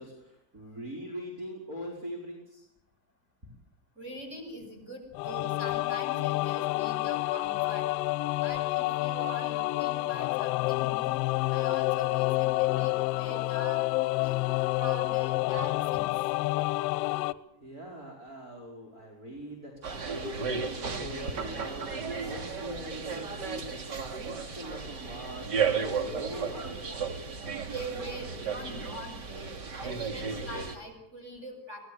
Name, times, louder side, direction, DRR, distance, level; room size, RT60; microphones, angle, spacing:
voice 1, 0.0-2.6 17.6-26.8, equal, 40° right, -1 dB, 5.4 m, -42 dB
voice 2, 4.0-7.9 8.3-11.2 11.5-13.8 14.2-14.4 14.8-16.1 27.6-31.8, right 1 dB, 20° right, 5 dB, 7.3 m, -42 dB
sound 1, 5.1-17.3, left 20 dB, 55° left, 0.9 m, -28 dB
sound 2, 19.8-30.8, right 5 dB, 70° right, 3.2 m, -34 dB
27.0 x 18.5 x 7.1 m, 0.80 s
cardioid pair, 175°, 49 cm